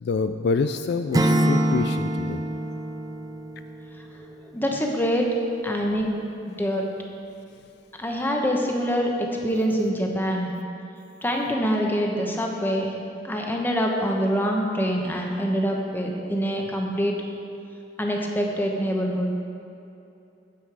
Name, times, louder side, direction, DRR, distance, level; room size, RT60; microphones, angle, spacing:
voice 1, 0.0-2.4, left 4 dB, 60° left, 8 dB, 0.3 m, -26 dB
Acoustic guitar / Strum, 1.1-4.2, right 1 dB, 20° right, 0.5 m, -25 dB
voice 2, 4.5-5.3 5.6-6.1 6.5-6.8 8.0-10.5 11.2-12.9 13.2-17.1 18.0-19.3, equal, 10° left, 0 dB, 1.0 m, -25 dB
9.4 x 8.4 x 4.8 m, 2.7 s
head